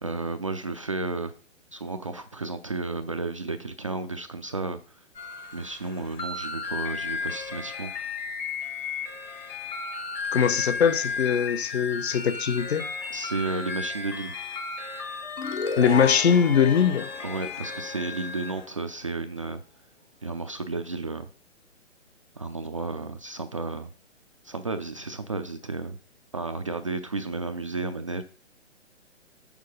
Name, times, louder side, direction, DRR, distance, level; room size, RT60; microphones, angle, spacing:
voice 1, 0.0-1.3 1.7-5.0 5.5-8.1 13.1-14.3 17.2-19.6 20.2-21.3 22.4-23.9 24.4-26.0 26.3-28.2, right 3 dB, 30° right, 0.3 m, -32 dB
sound 1, 5.1-18.6, left 5 dB, 10° left, 0.7 m, -34 dB
voice 2, 10.3-12.9 15.8-17.1, left 7 dB, 60° left, 1.0 m, -22 dB
sound 2, 15.4-18.6, left 4 dB, 80° left, 1.3 m, -35 dB
7.2 x 6.5 x 5.2 m
hypercardioid pair, 150°, 36 cm